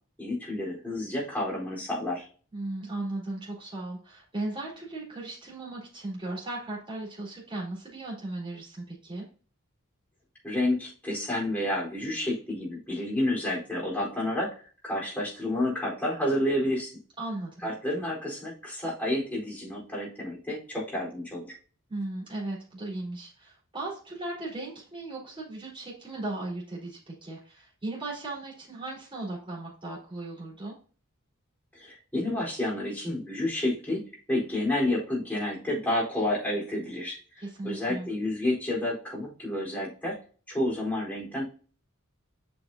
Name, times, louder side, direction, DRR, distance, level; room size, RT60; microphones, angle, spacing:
voice 1, 0.2-2.3 10.4-14.5 14.8-16.9 17.6-21.5 31.7-34.0 34.3-37.2 37.6-40.2 40.5-41.4, left 1 dB, 10° left, -5 dB, 4.2 m, -30 dB
voice 2, 2.5-9.2 17.2-17.7 21.9-30.8 37.4-38.1, right 2 dB, 25° right, -4 dB, 4.3 m, -37 dB
8.1 x 6.4 x 2.8 m, 0.38 s
head